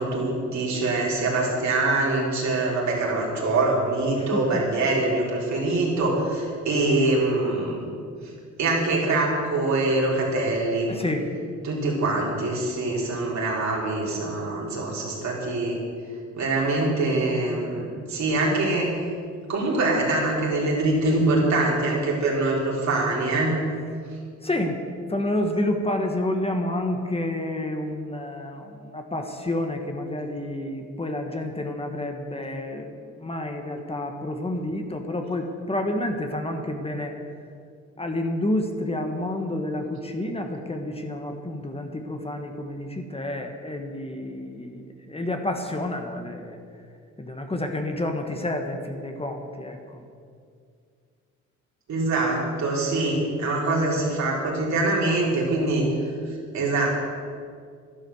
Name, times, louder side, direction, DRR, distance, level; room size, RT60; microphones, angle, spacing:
voice 1, 0.0-7.9 8.6-10.9 11.6-15.8 16.4-18.9 19.5-23.6 51.9-55.8 56.5-56.9, right 2 dB, 65° right, -3 dB, 4.1 m, -24 dB
voice 2, 4.2-4.6 10.9-11.3 24.4-24.8 25.1-37.1 38.0-46.6 47.2-50.0, left 1 dB, 20° left, 4 dB, 1.4 m, -29 dB
11.5 x 11.0 x 7.1 m, 2.2 s
cardioid pair, 90°, 30 cm